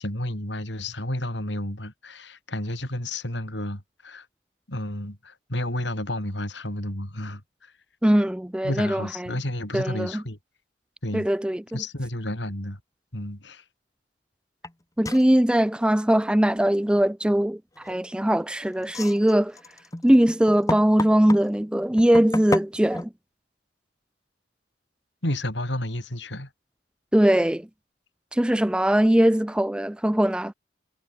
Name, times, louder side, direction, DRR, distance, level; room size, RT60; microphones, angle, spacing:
voice 1, 0.0-4.3 4.7-7.7 8.6-10.4 11.0-11.3 11.7-12.8 13.1-13.6 25.2-26.5, left 1 dB, 75° left, 5.5 m, -31 dB
voice 2, 8.0-9.3 9.7-10.2 11.1-11.8 15.0-17.6 17.8-19.6 20.0-23.1 27.1-27.7 28.3-30.5, right 1 dB, 5° right, 0.3 m, -21 dB
sound 1, 14.6-14.7 15.0-15.3 17.8-18.2 18.8-21.5 22.0-23.0, left 2 dB, 20° left, 1.0 m, -31 dB
head